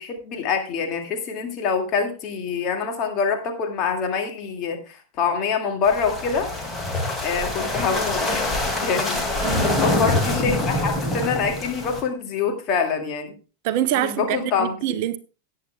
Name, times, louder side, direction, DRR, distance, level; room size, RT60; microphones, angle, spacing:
voice 1, 0.0-6.5 7.2-13.3 13.9-15.0, left 5 dB, 35° left, 2.1 m, -25 dB
sound 1, 5.8-12.0, left 2 dB, 10° left, 2.3 m, -25 dB
voice 2, 9.4-10.0 13.6-15.2, right 12 dB, 50° right, 0.7 m, -25 dB
18.0 x 8.6 x 2.3 m
figure-of-eight pair, 90°, 0 cm